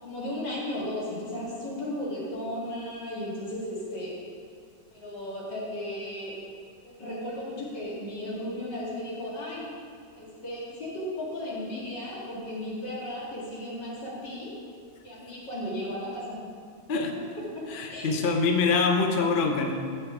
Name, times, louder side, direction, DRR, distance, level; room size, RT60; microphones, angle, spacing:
voice 1, 0.0-4.2 4.9-6.4 6.8-9.6 10.2-14.5 15.0-16.4 17.5-18.2, left 1 dB, 80° left, -6 dB, 2.8 m, -35 dB
voice 2, 17.7-19.7, left 4 dB, 50° left, 3 dB, 0.6 m, -24 dB
8.8 x 7.1 x 4.9 m, 2.2 s
omnidirectional pair, 1.9 m